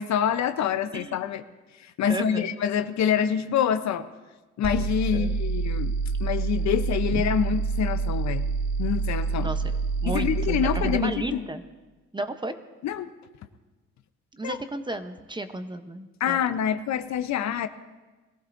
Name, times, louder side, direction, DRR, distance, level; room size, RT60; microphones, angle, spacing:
voice 1, 0.0-1.4 1.8-4.1 4.6-5.9 6.2-8.4 8.8-9.5 10.0-11.5 12.8-13.1 14.4-14.6 16.2-17.7, left 8 dB, 65° left, 10 dB, 0.7 m, -26 dB
voice 2, 0.9-1.2 2.1-2.5 5.1-5.4 7.1-7.2 9.4-9.6 10.0-11.6 12.1-12.6 14.3-16.4, right 2 dB, 15° right, 9 dB, 0.8 m, -33 dB
sound 1, 4.6-11.0, right 4 dB, 65° right, 1.8 m, -27 dB
21.0 x 15.0 x 2.6 m, 1.2 s
cardioid pair, 90°, 30 cm